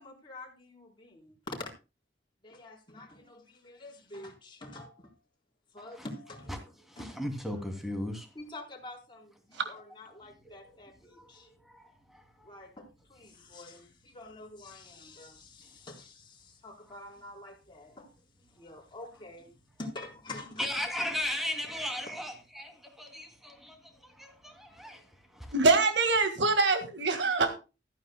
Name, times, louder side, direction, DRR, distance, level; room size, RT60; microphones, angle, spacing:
voice 1, 0.0-1.7 2.4-5.1 5.7-6.5 7.0-7.1 7.5-7.6 8.3-11.5 12.4-18.1 18.5-19.5 19.8-20.8, left 2 dB, 25° left, 4.1 m, -46 dB
voice 2, 6.9-8.3 10.4-10.6 11.2-11.3 11.7-11.8 12.1-12.6 20.6-23.8 24.0-25.0 25.3-25.5, left 1 dB, ahead, 2.8 m, -36 dB
voice 3, 25.5-27.5, right 3 dB, 70° right, 1.9 m, -24 dB
15.0 x 13.5 x 2.3 m
head